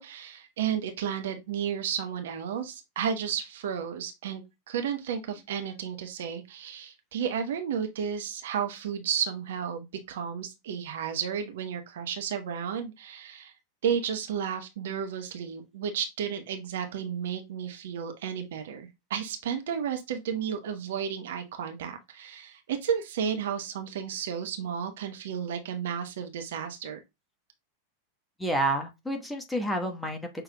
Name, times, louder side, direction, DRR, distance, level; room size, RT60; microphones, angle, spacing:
voice 1, 0.0-13.5 13.8-27.0, right 8 dB, 60° right, 0.9 m, -32 dB
voice 2, 28.4-30.4, right 1 dB, 5° left, 1.1 m, -29 dB
6.1 x 3.2 x 2.2 m
figure-of-eight pair, 90°, 0 cm